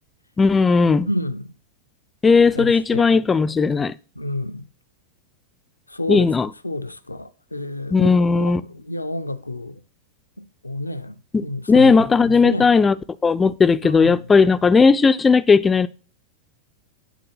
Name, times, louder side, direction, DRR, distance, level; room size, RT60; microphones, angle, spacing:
voice 1, 0.4-1.1 2.2-3.9 6.1-6.5 7.9-8.6 11.3-13.0 13.2-15.9, left 4 dB, 15° left, 0.3 m, -16 dB
voice 2, 1.1-1.5 2.4-3.1 4.2-4.7 5.9-6.3 6.6-8.1 8.4-9.8 10.4-11.2 11.4-11.9 12.4-12.7 13.8-14.2, left 1 dB, 85° left, 0.4 m, -29 dB
9.1 x 4.0 x 5.6 m
figure-of-eight pair, 90°, 0 cm